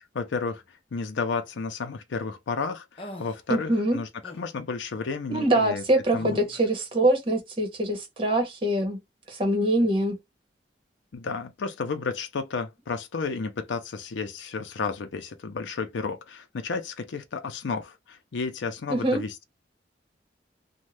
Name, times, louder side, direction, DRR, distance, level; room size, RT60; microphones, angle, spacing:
voice 1, 0.1-0.6 0.9-5.8 6.1-6.4 11.1-19.4, left 4 dB, 85° left, 0.5 m, -32 dB
sound 1, 3.0-3.4 4.2-4.5 6.2-6.6, left 1 dB, 30° left, 0.6 m, -41 dB
voice 2, 3.5-4.0 5.3-9.0 9.3-10.2 18.9-19.2, right 1 dB, 30° right, 1.1 m, -24 dB
2.6 x 2.2 x 3.2 m
head